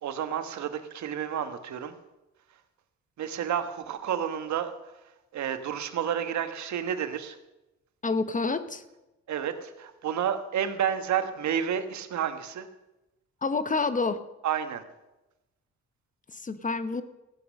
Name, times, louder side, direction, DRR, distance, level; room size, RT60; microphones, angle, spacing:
voice 1, 0.0-1.9 3.2-4.7 5.3-7.4 9.3-12.7 14.4-14.8, right 9 dB, 70° right, 9 dB, 1.4 m, -30 dB
voice 2, 8.0-8.8 13.4-14.2 16.3-17.0, left 3 dB, 25° left, 12 dB, 0.9 m, -28 dB
15.0 x 8.4 x 6.5 m, 0.99 s
cardioid pair, 90°, 30 cm